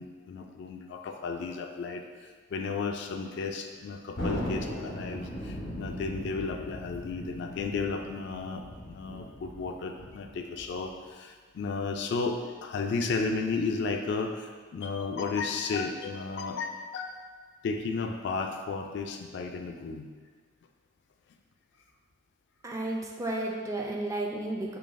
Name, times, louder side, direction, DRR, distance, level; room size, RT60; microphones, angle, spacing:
voice 1, 0.0-17.2 17.6-20.1, left 4 dB, 65° left, 5 dB, 0.3 m, -33 dB
Thunder, 4.2-11.0, equal, 85° left, 0.8 m, -38 dB
voice 2, 22.6-24.8, right 2 dB, 15° right, 0 dB, 0.3 m, -32 dB
3.9 x 3.3 x 2.5 m, 1.5 s
head